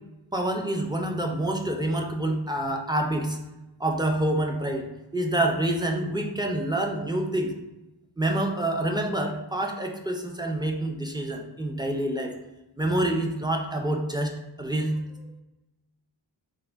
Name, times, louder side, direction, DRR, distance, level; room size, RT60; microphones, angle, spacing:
voice 1, 0.3-3.4 3.8-4.8 5.1-7.5 8.2-12.3 12.8-15.0, right 1 dB, 10° right, 2 dB, 0.3 m, -27 dB
3.3 x 2.1 x 3.4 m, 1.0 s
wide cardioid pair, 90°, 44 cm